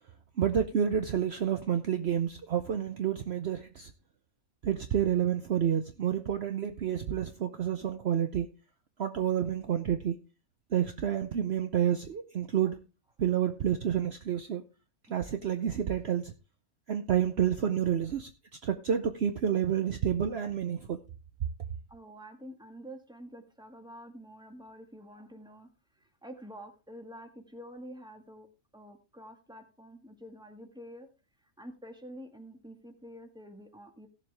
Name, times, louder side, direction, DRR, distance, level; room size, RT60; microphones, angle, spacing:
voice 1, 0.4-3.9 4.6-8.5 9.0-10.2 10.7-12.8 13.2-14.6 15.1-16.3 16.9-18.3 18.6-21.0, right 9 dB, 55° right, 0.9 m, -29 dB
voice 2, 21.9-25.7 25.9-28.5 28.7-31.1 31.6-34.1, equal, 5° right, 1.6 m, -48 dB
16.5 x 7.4 x 3.4 m
omnidirectional pair, 1.4 m